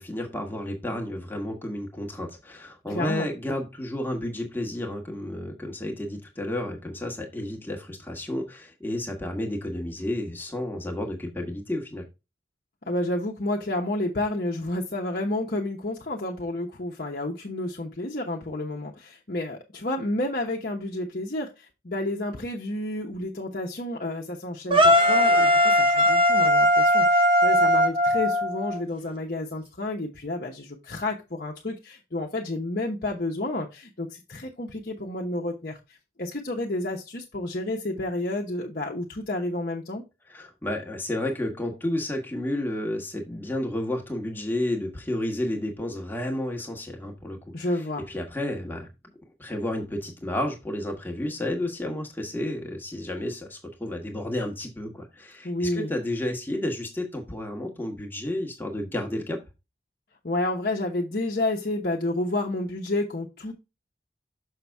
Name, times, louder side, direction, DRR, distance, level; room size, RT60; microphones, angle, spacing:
voice 1, 0.0-12.0 40.3-47.6 48.1-48.9 49.4-59.4, left 1 dB, 10° left, 1.3 m, -31 dB
voice 2, 2.9-3.3 12.9-40.0 47.5-48.0 55.4-55.9 60.2-63.5, left 1 dB, 50° left, 1.0 m, -30 dB
sound 1, 24.7-28.8, equal, 30° right, 0.9 m, -19 dB
6.5 x 5.8 x 3.4 m
head